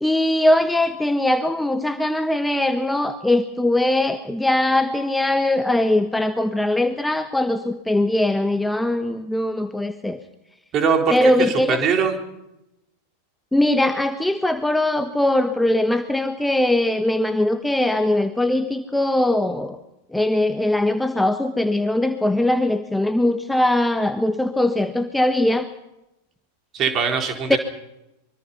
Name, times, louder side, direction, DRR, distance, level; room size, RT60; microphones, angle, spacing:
voice 1, 0.0-10.2 11.1-11.8 13.5-19.8 20.1-25.7 27.5-27.6, left 1 dB, 5° left, 9 dB, 1.2 m, -21 dB
voice 2, 10.7-12.2 26.7-27.6, right 6 dB, 30° right, 4 dB, 4.2 m, -21 dB
25.0 x 24.0 x 5.7 m, 0.91 s
figure-of-eight pair, 90°, 0 cm